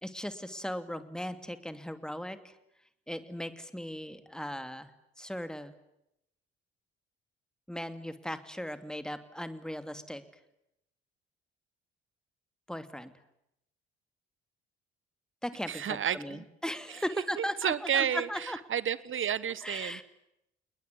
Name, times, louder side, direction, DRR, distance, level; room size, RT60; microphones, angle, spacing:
voice 1, 0.0-2.5 3.1-4.9 5.2-5.7 7.7-10.2 12.7-13.1 15.4-18.6 19.6-20.0, equal, ahead, 10 dB, 2.7 m, -38 dB
voice 2, 15.7-16.4 17.4-18.3 18.7-20.0, right 9 dB, 40° right, 19 dB, 1.3 m, -31 dB
28.5 x 21.0 x 9.5 m, 0.82 s
figure-of-eight pair, 50°, 31 cm